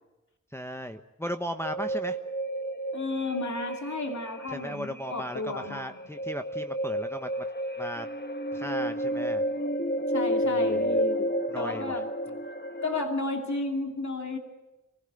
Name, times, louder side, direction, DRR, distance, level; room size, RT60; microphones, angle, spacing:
voice 1, 0.5-2.2 4.5-7.5 7.8-8.1 8.5-9.4 10.4-11.0 11.5-12.0, equal, 10° left, 6 dB, 1.1 m, -37 dB
sound 1, 1.6-13.1, equal, 35° left, 1.4 m, -31 dB
voice 2, 2.9-6.0 10.1-12.1 12.8-14.4, left 3 dB, 70° left, 3 dB, 2.7 m, -32 dB
24.0 x 16.0 x 9.1 m, 1.0 s
cardioid pair, 45°, 30 cm